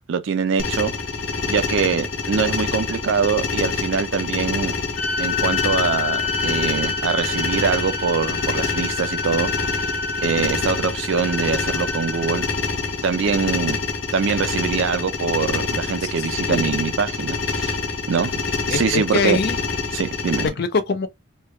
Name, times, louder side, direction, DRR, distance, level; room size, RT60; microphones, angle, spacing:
voice 1, 0.1-0.9 1.5-4.7 5.2-9.5 10.2-12.5 13.0-13.8 14.1-17.8 18.1-18.4 18.7-19.4 19.9-20.5, right 6 dB, 65° right, 0.4 m, -23 dB
sound 1, 0.6-20.5, left 4 dB, 65° left, 0.9 m, -26 dB
sound 2, 5.0-12.5, left 4 dB, 30° left, 1.2 m, -28 dB
voice 2, 18.7-19.6 20.6-21.1, left 4 dB, 50° left, 0.4 m, -23 dB
3.1 x 2.3 x 3.0 m
head